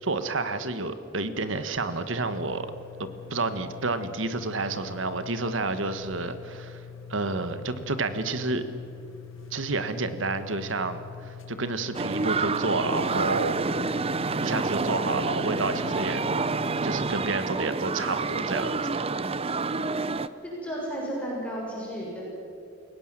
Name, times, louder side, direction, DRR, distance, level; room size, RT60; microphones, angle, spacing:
voice 1, 0.0-2.7 3.0-6.8 7.1-8.6 9.5-13.6 14.4-16.2 16.8-19.1, right 3 dB, 70° right, 10 dB, 1.5 m, -30 dB
sound 1, 2.2-17.2, left 7 dB, 75° left, 1.0 m, -44 dB
sound 2, 11.9-20.3, right 3 dB, 30° right, 0.7 m, -28 dB
voice 2, 20.4-22.3, equal, 5° left, -5 dB, 6.6 m, -33 dB
29.5 x 17.5 x 7.5 m, 2.6 s
head